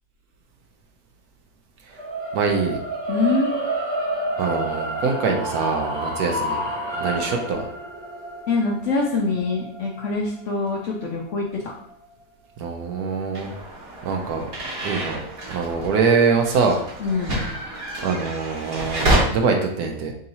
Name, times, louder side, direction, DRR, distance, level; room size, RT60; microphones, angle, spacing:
sound 1, 2.0-12.1, right 1 dB, 30° right, 0.5 m, -30 dB
voice 1, 2.3-2.8 4.4-6.6 7.0-7.6 12.6-13.5 14.0-14.5 14.8-15.2 15.5-16.8 18.0-20.1, right 5 dB, 70° right, 3 dB, 1.1 m, -23 dB
voice 2, 3.1-3.5 8.5-11.6 17.0-17.4, left 3 dB, 60° left, -2 dB, 0.8 m, -24 dB
sound 2, 13.3-19.2, right 1 dB, 50° right, 1.5 m, -28 dB
3.6 x 2.7 x 4.2 m, 0.72 s
omnidirectional pair, 1.8 m